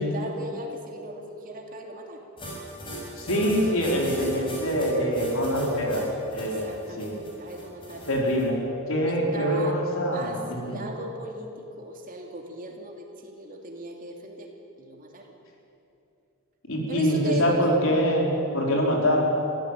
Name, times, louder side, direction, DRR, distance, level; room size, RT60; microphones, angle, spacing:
voice 1, 0.0-2.2 6.4-8.1 9.1-9.8 10.1-14.5 14.8-15.3 16.9-17.8, right 1 dB, 40° right, 2 dB, 2.8 m, -38 dB
sound 1, 2.4-8.4, equal, 25° left, 6.4 m, -39 dB
voice 2, 3.1-6.7 7.0-7.1 8.1-10.8 16.7-19.2, equal, 65° left, -1 dB, 4.8 m, -24 dB
25.0 x 16.0 x 9.2 m, 2.8 s
head